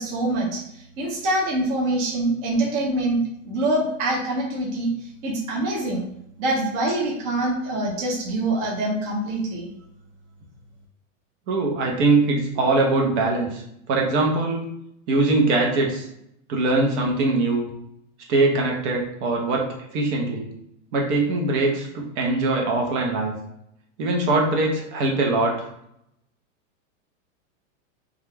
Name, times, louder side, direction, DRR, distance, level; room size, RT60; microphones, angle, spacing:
voice 1, 0.0-6.0 6.4-9.7, right 1 dB, 25° right, -3 dB, 0.3 m, -25 dB
voice 2, 11.5-14.7 15.1-16.1 16.5-17.7 18.3-20.5 20.9-23.4 24.0-25.7, right 2 dB, 55° right, 0 dB, 0.7 m, -22 dB
2.3 x 2.1 x 3.2 m, 0.76 s
supercardioid pair, 145°, 40 cm